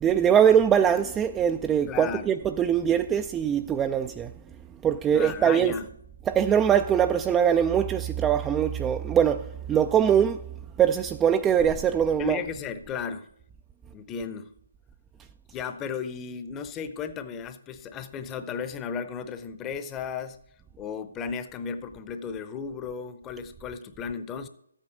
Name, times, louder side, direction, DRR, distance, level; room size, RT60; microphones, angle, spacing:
voice 1, 0.0-4.3 4.8-5.7 6.3-10.4 10.8-12.4, right 8 dB, 10° right, 0.3 m, -22 dB
voice 2, 1.9-2.3 5.1-5.9 12.2-13.3 13.9-14.5 15.5-20.4 20.8-24.5, left 6 dB, 15° left, 0.7 m, -34 dB
14.0 x 8.8 x 5.2 m
figure-of-eight pair, 145°, 0 cm